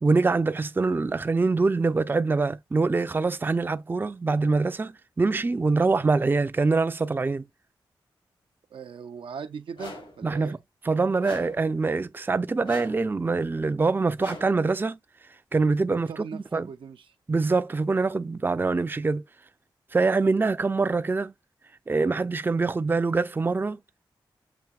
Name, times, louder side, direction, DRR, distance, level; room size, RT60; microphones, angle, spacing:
voice 1, 0.0-4.9 5.2-7.4 10.2-10.6 10.9-15.0 15.5-16.7 17.3-19.2 19.9-21.3 21.9-23.8, right 3 dB, 25° right, 0.4 m, -24 dB
voice 2, 8.7-10.6 15.9-17.1, right 6 dB, 80° right, 0.5 m, -39 dB
sound 1, 9.8-10.2 11.2-11.7 12.6-13.1 14.2-14.7, left 2 dB, 90° left, 2.8 m, -41 dB
7.0 x 2.8 x 2.3 m
cardioid pair, 50°, 9 cm